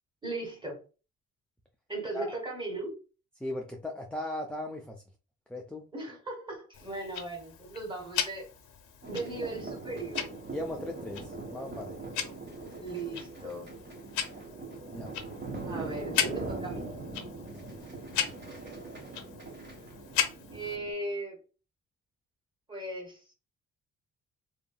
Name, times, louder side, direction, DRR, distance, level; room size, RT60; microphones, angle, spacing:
voice 1, 0.2-0.8 1.9-3.0 5.9-8.5 9.1-10.2 12.8-13.7 15.7-16.9 20.5-21.4 22.7-23.2, right 2 dB, 15° right, 1.4 m, -37 dB
voice 2, 3.4-5.0 5.5-5.8 10.5-12.0 14.9-15.1 15.7-15.9 16.2-16.4 17.5-17.8, left 1 dB, 5° left, 0.4 m, -38 dB
Tick-tock, 6.7-20.8, left 9 dB, 80° left, 0.7 m, -38 dB
sound 1, 9.0-20.9, right 3 dB, 35° right, 1.2 m, -41 dB
2.8 x 2.5 x 2.2 m
cardioid pair, 90°, 30 cm